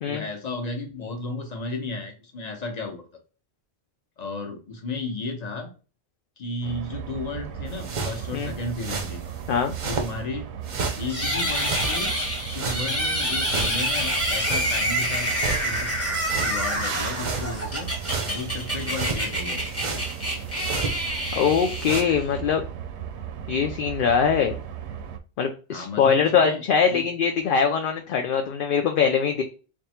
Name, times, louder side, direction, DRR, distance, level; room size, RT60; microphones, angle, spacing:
voice 1, 0.0-3.0 4.2-5.7 6.4-9.2 9.8-10.5 11.0-12.2 12.5-15.3 15.6-16.0 16.4-17.9 18.3-19.6 25.7-26.6 26.9-27.1, left 3 dB, 40° left, 3 dB, 0.9 m, -33 dB
sound 1, 6.6-25.2, right 9 dB, 85° right, 0.9 m, -36 dB
sound 2, 7.7-10.1 10.6-22.0, right 4 dB, 50° right, 0.7 m, -34 dB
sound 3, 11.1-22.4, equal, 15° left, 1.1 m, -27 dB
voice 2, 21.3-22.6 23.5-24.6 25.4-29.4, left 6 dB, 60° left, 4 dB, 0.6 m, -22 dB
3.5 x 2.2 x 4.2 m, 0.35 s
omnidirectional pair, 1.1 m